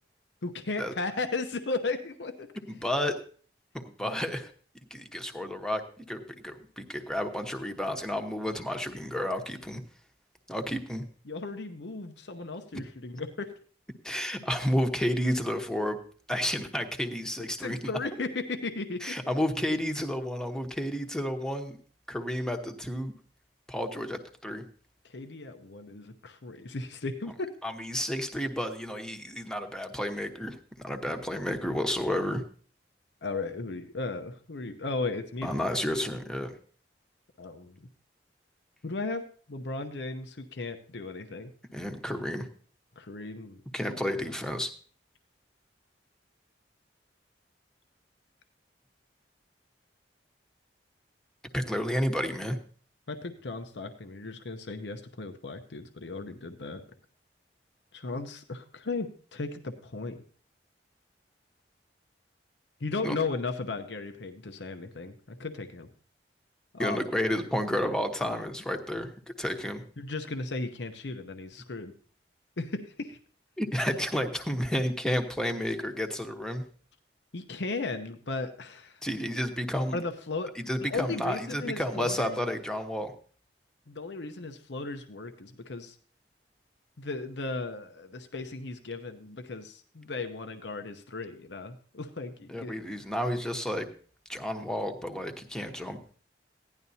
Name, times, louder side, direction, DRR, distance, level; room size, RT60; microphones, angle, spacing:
voice 1, 0.4-2.5 11.3-13.5 17.6-19.2 25.0-27.5 33.2-35.7 37.4-37.9 38.8-39.2 39.5-41.5 43.0-43.6 43.9-44.3 53.1-56.8 57.9-60.2 62.8-65.9 66.7-67.0 70.0-71.9 72.6-73.2 77.3-79.0 79.9-80.5 80.8-82.4 83.9-86.0 87.0-92.8, left 3 dB, 75° left, 7 dB, 0.8 m, -36 dB
voice 2, 2.7-3.2 4.0-4.5 4.9-9.8 10.5-11.0 12.7-12.8 14.0-16.0 16.3-17.8 19.0-21.8 22.1-23.1 23.7-24.6 27.6-32.4 35.4-36.6 41.7-42.5 43.7-44.7 51.5-52.6 63.0-63.2 66.8-69.1 69.4-69.8 73.6-76.6 79.0-80.0 80.5-83.1 92.5-93.9 94.3-96.1, equal, 5° left, 5 dB, 1.0 m, -31 dB
16.0 x 11.0 x 2.8 m, 0.44 s
head